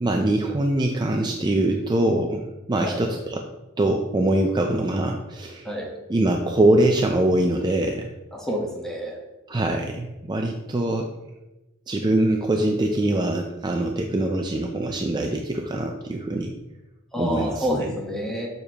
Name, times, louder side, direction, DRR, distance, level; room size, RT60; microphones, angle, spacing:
voice 1, 0.0-3.4 3.8-5.7 6.1-8.1 9.5-11.1 11.9-16.5 17.2-17.7, right 1 dB, 20° right, 2 dB, 0.4 m, -23 dB
voice 2, 8.3-9.2 17.1-18.5, equal, 5° left, -2 dB, 1.1 m, -28 dB
6.7 x 6.7 x 2.9 m, 1.0 s
head